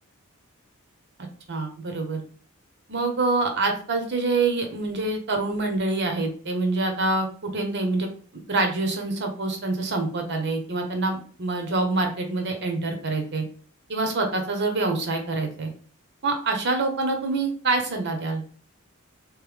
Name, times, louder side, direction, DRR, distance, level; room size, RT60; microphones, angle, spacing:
voice 1, 1.5-2.2 2.9-13.4 13.9-15.7 16.2-18.4, right 3 dB, 55° right, 3 dB, 0.9 m, -26 dB
3.5 x 3.3 x 3.4 m, 0.43 s
head